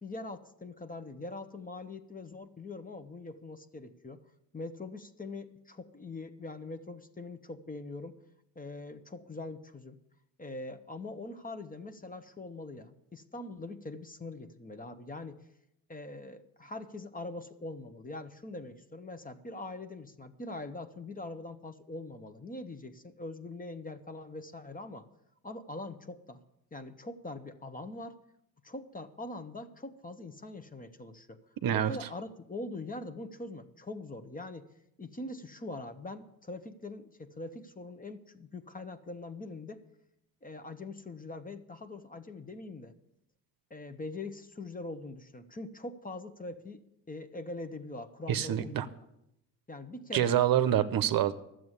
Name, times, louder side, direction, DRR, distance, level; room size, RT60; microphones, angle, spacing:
voice 1, 0.0-4.2 4.5-8.2 8.5-10.0 10.4-15.4 15.9-25.1 25.4-26.4 26.7-28.2 28.6-31.4 31.7-34.7 35.0-39.8 40.4-42.9 43.7-46.8 47.1-49.0 49.7-50.4, left 2 dB, 20° left, 10 dB, 1.1 m, -43 dB
voice 2, 31.6-32.1 48.3-48.9 50.1-51.3, right 11 dB, 50° right, 11 dB, 0.9 m, -26 dB
12.0 x 7.8 x 9.7 m, 0.82 s
supercardioid pair, 85°, 44 cm